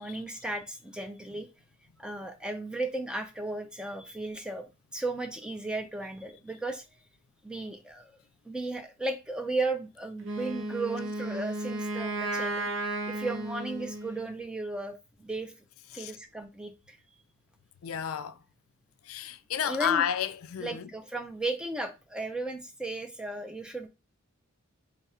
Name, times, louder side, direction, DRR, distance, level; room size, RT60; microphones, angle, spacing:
voice 1, 0.0-1.5 2.0-4.7 4.9-6.8 7.4-8.2 8.5-12.7 13.1-14.9 15.2-15.5 15.9-17.0 19.6-20.0 20.6-23.9, right 2 dB, 5° right, 0.4 m, -35 dB
Wind instrument woodwind instrument, 10.2-14.3, right 2 dB, 65° right, 0.7 m, -34 dB
voice 2, 17.8-18.4 19.0-20.9, left 9 dB, 90° left, 0.4 m, -31 dB
3.2 x 2.4 x 4.1 m
head